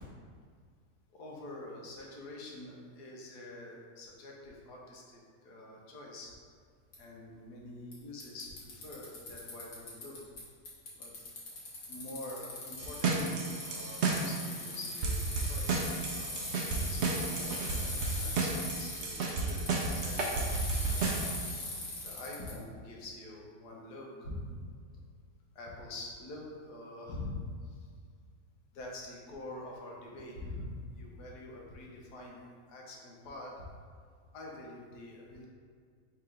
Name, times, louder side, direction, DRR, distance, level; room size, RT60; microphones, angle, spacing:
voice 1, 1.1-6.3 7.0-10.3 10.9-11.2 11.9-21.2 22.0-24.4 25.5-27.4 27.6-27.8 28.7-33.6 34.3-35.5, left 2 dB, 80° left, -2 dB, 1.4 m, -46 dB
Bicycle, 6.9-7.0 7.9-8.0 8.2-10.4 10.6-22.5, left 2 dB, 65° left, 1.5 m, -40 dB
sound 1, 12.8-14.5 15.0-21.3, right 3 dB, 70° right, 0.6 m, -33 dB
3.7 x 2.9 x 4.8 m, 2.1 s
omnidirectional pair, 1.7 m